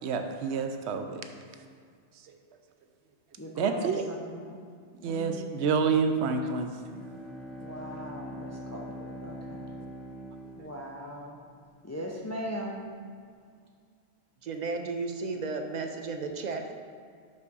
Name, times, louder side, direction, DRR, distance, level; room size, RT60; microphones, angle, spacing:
voice 1, 0.0-1.2 3.6-4.1 5.0-6.7, right 5 dB, 85° right, 6 dB, 0.9 m, -28 dB
voice 2, 3.4-4.6 5.0-5.4 7.6-9.6 10.6-11.4 11.8-12.8, equal, 25° left, -1 dB, 0.3 m, -39 dB
Bowed string instrument, 6.8-11.4, equal, ahead, 0.7 m, -43 dB
voice 3, 14.4-16.7, right 3 dB, 50° right, 5 dB, 0.6 m, -34 dB
5.4 x 4.7 x 5.3 m, 2.1 s
omnidirectional pair, 1.1 m